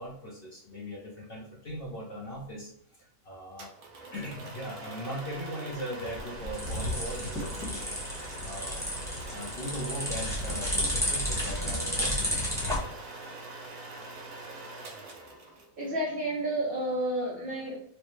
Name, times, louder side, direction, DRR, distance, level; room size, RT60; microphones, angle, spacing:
voice 1, 0.0-2.7 3.0-3.7 4.1-9.0 9.3-12.4, equal, 50° left, -3 dB, 0.8 m, -39 dB
sound 1, 3.6-15.9, right 2 dB, 80° right, 1.3 m, -43 dB
sound 2, 6.0-12.8, left 1 dB, ahead, 1.0 m, -32 dB
voice 2, 15.8-17.8, right 1 dB, 50° right, -4 dB, 0.8 m, -30 dB
4.4 x 2.1 x 3.1 m, 0.69 s
omnidirectional pair, 1.6 m